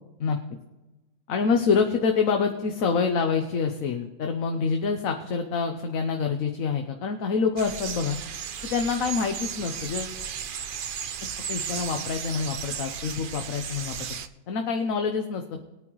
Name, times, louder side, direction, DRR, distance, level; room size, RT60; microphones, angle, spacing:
voice 1, 1.3-8.2 8.6-10.2 11.5-14.0 14.5-15.6, left 5 dB, 65° left, 4 dB, 1.2 m, -26 dB
sound 1, 7.6-14.3, right 8 dB, 60° right, 0.5 m, -35 dB
20.5 x 9.5 x 3.1 m, 1.1 s
omnidirectional pair, 1.7 m